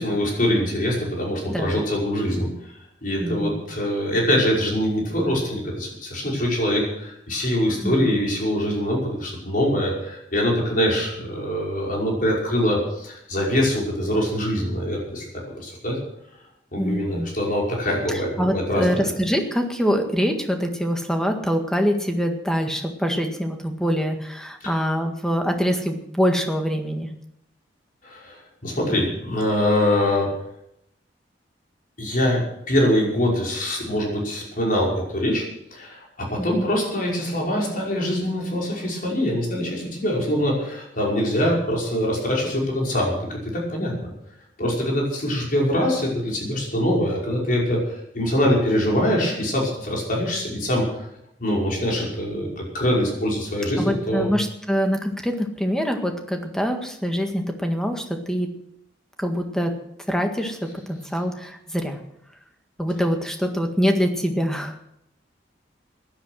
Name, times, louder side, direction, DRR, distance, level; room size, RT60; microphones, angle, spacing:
voice 1, 0.0-2.5 3.0-15.2 15.6-16.0 16.7-19.1 24.6-24.7 28.0-30.3 32.0-35.4 35.7-44.1 44.6-51.1 51.4-54.3, equal, 50° left, -2 dB, 5.5 m, -23 dB
voice 2, 1.5-1.8 3.2-3.6 7.8-8.0 16.8-17.3 18.1-27.1 36.4-36.7 53.8-58.5 59.2-59.7 60.1-60.6 60.9-62.0 62.8-64.7, equal, 5° left, 4 dB, 1.7 m, -24 dB
16.0 x 11.0 x 6.4 m, 0.77 s
head